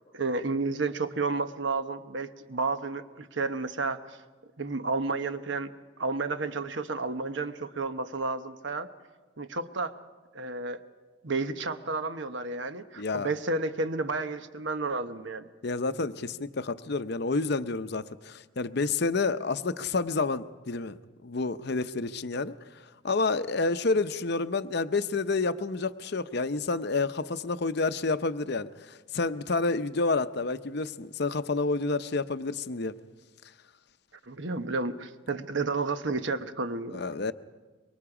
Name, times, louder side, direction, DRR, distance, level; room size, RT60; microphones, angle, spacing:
voice 1, 0.1-4.2 4.6-5.7 6.0-8.9 9.4-9.9 10.3-10.8 11.2-15.5 34.3-37.0, right 3 dB, 65° right, 1.0 m, -31 dB
voice 2, 13.0-13.3 15.6-21.0 21.2-22.5 23.0-32.9 36.9-37.3, left 3 dB, 55° left, 0.7 m, -29 dB
26.5 x 24.0 x 4.9 m
head